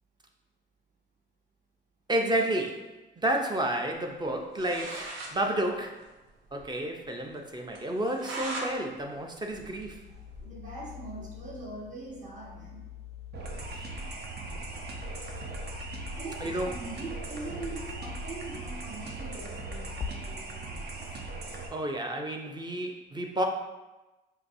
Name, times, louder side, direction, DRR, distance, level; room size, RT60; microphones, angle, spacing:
voice 1, 2.1-2.9 3.2-6.0 6.5-10.1 13.7-13.9 16.4-16.7 21.7-23.5, right 1 dB, 20° right, 2 dB, 0.6 m, -31 dB
sound 1, 4.3-4.4 4.5-5.4 5.7-5.8 6.0-6.1 6.5-6.6 7.0-7.1 7.8-8.7 9.1-10.4, right 2 dB, 85° right, 0.7 m, -39 dB
sound 2, 9.5-20.1, left 9 dB, 35° left, 0.4 m, -45 dB
voice 2, 10.4-12.8 16.2-21.0, right 3 dB, 40° right, -4 dB, 1.4 m, -42 dB
sound 3, 13.3-21.7, right 3 dB, 55° right, 0.7 m, -39 dB
5.6 x 2.7 x 2.6 m, 1.1 s
cardioid pair, 90°, 20 cm